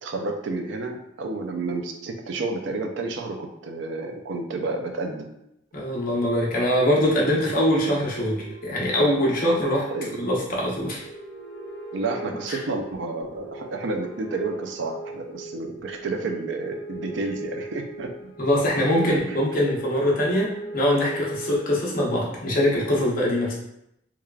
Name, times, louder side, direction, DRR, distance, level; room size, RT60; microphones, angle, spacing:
voice 1, 0.0-5.3 9.9-10.3 11.9-18.1 19.1-19.4, right 3 dB, 70° right, 3 dB, 0.4 m, -30 dB
voice 2, 5.7-9.9 10.2-11.0 12.5-12.6 18.4-23.5, left 1 dB, 50° left, -4 dB, 0.7 m, -23 dB
sound 1, 7.2-21.6, right 2 dB, 80° left, 0.8 m, -38 dB
3.2 x 2.3 x 2.3 m, 0.80 s
head